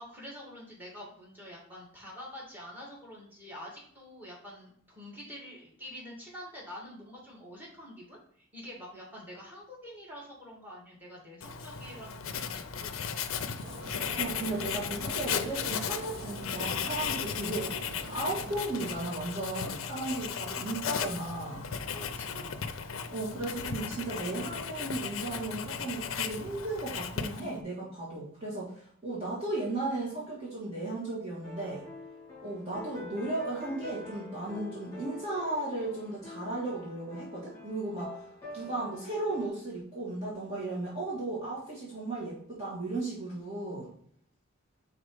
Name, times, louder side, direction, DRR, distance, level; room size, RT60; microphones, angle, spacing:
voice 1, 0.0-13.3 21.7-22.6, equal, 10° right, -5 dB, 2.3 m, -47 dB
Writing, 11.4-27.6, left 7 dB, 70° left, 0.5 m, -36 dB
sound 1, 13.6-18.6, right 1 dB, 55° right, 1.4 m, -45 dB
voice 2, 14.2-17.7 18.1-21.7 23.1-31.9 32.4-38.2 38.5-43.9, right 2 dB, 30° right, -7 dB, 1.9 m, -35 dB
sound 2, 31.4-39.5, left 2 dB, 15° left, 2.8 m, -46 dB
5.2 x 4.1 x 4.9 m, 0.62 s
head